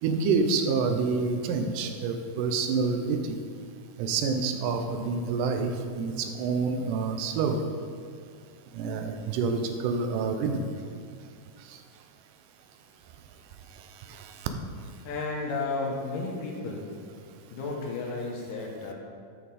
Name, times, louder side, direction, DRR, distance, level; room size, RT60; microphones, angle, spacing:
voice 1, 0.0-3.4 4.0-7.6 8.7-10.7 11.7-11.8 14.1-14.5, right 4 dB, 80° right, 6 dB, 2.2 m, -28 dB
voice 2, 15.0-16.9 17.5-18.9, left 3 dB, 80° left, -1 dB, 2.5 m, -33 dB
9.4 x 5.8 x 4.1 m, 2.2 s
omnidirectional pair, 3.8 m